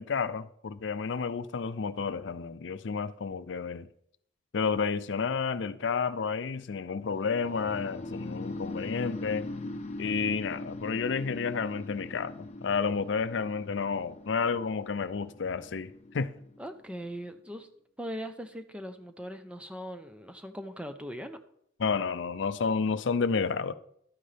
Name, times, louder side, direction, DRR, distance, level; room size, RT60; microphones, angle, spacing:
voice 1, 0.0-3.9 4.5-9.5 10.0-16.3 21.8-23.7, left 5 dB, 75° left, 0.5 m, -31 dB
sound 1, 7.1-17.1, left 2 dB, 35° left, 0.6 m, -41 dB
voice 2, 16.6-17.7 18.0-21.4, equal, 5° right, 0.7 m, -40 dB
12.5 x 9.5 x 3.4 m
head